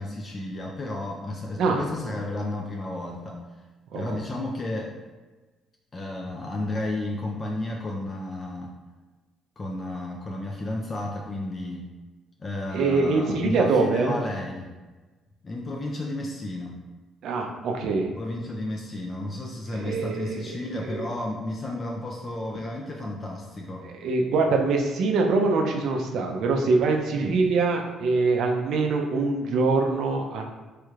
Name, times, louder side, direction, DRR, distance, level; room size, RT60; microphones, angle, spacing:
voice 1, 0.0-3.4 3.9-5.0 5.9-8.7 9.6-11.9 12.4-14.7 15.4-16.8 18.0-23.9, left 1 dB, 30° left, -1 dB, 0.4 m, -32 dB
voice 2, 12.7-14.2 17.2-18.1 19.7-21.1 23.8-30.4, right 3 dB, 70° right, 2 dB, 0.4 m, -24 dB
3.1 x 3.1 x 2.4 m, 1.3 s
cardioid pair, 90°, 0 cm